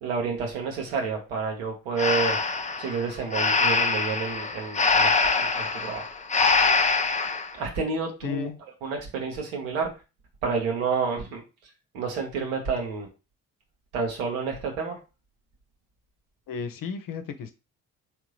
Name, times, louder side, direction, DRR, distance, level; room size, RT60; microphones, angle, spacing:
voice 1, 0.0-2.4 2.8-6.1 7.5-8.5 8.8-9.9 10.4-11.4 11.9-13.1 13.9-15.0, right 5 dB, 80° right, 1 dB, 1.4 m, -29 dB
Breathing, 2.0-7.5, left 4 dB, 20° left, 0.6 m, -24 dB
voice 2, 8.2-8.6 16.5-17.5, left 6 dB, 55° left, 9 dB, 0.8 m, -33 dB
3.8 x 3.3 x 3.2 m, 0.29 s
hypercardioid pair, 50°, 39 cm